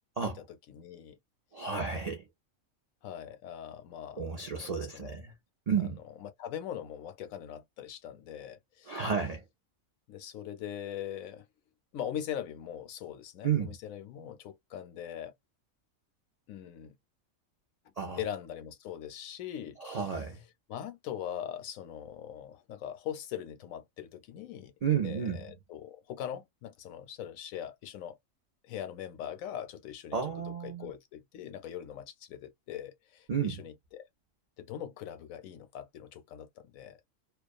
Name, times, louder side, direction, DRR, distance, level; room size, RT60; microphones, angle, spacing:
voice 1, 0.7-1.2 3.0-5.3 6.2-9.0 10.1-11.5 11.9-15.3 16.5-16.9 17.9-20.3 20.7-24.7 25.0-28.2 28.6-30.2 30.4-34.1 34.6-37.0, left 10 dB, 80° left, 1.0 m, -41 dB
voice 2, 1.5-2.2 4.2-5.3 5.7-6.0 8.9-9.4 13.4-13.8 18.0-18.2 19.8-20.4 24.8-25.5 30.1-30.9 33.3-33.6, right 7 dB, 60° right, 0.4 m, -32 dB
2.4 x 2.3 x 2.4 m
omnidirectional pair, 1.4 m